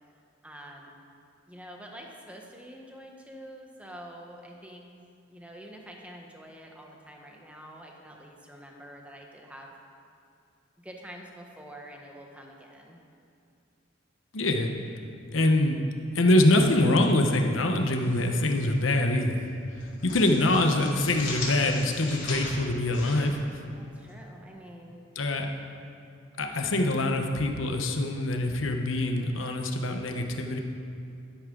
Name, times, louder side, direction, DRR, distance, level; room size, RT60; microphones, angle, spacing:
voice 1, 0.4-1.0 1.5-4.9 5.3-9.7 10.8-13.0 23.8-25.1, equal, 5° right, 0 dB, 1.2 m, -46 dB
voice 2, 14.3-14.7 15.3-15.8 16.1-19.4 20.0-23.4 25.1-25.5 26.4-30.6, left 1 dB, 80° left, 4 dB, 1.0 m, -24 dB
sound 1, 17.8-18.7 19.0-19.2 19.6-24.1, left 3 dB, 65° left, 2.9 m, -39 dB
11.5 x 10.5 x 3.9 m, 2.6 s
head